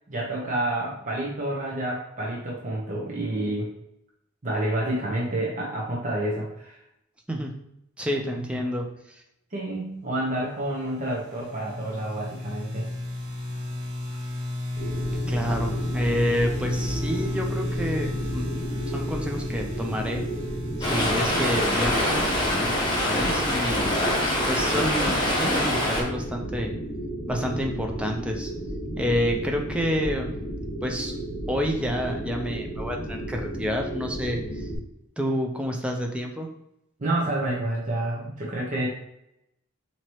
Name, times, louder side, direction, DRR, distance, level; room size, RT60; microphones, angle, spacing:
voice 1, 0.1-3.7 4.4-6.8 8.3-8.6 9.5-12.9 37.0-38.9, right 1 dB, 40° right, -4 dB, 0.8 m, -29 dB
voice 2, 8.0-9.2 15.3-18.5 18.9-20.2 20.8-23.8 24.5-26.7 27.3-28.5 29.0-30.3 30.8-31.1 31.5-34.7 35.2-36.5, equal, 5° right, 2 dB, 0.5 m, -29 dB
sound 1, 10.8-22.6, left 1 dB, 80° right, 1.4 m, -33 dB
sound 2, 14.8-34.8, right 1 dB, 40° left, 1.4 m, -33 dB
Stream, 20.8-26.0, left 1 dB, 20° left, 1.0 m, -24 dB
4.6 x 2.9 x 2.9 m, 0.81 s
head